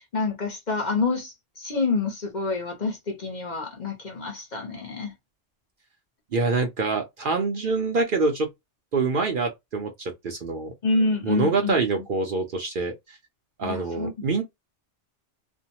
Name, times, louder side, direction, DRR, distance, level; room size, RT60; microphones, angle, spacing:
voice 1, 0.0-5.1 10.8-11.8 13.6-14.1, left 3 dB, 45° left, 0.8 m, -27 dB
voice 2, 6.3-8.5 8.9-10.7 11.2-13.2 13.6-14.4, right 4 dB, 55° right, 0.7 m, -25 dB
2.6 x 2.1 x 2.8 m
omnidirectional pair, 1.2 m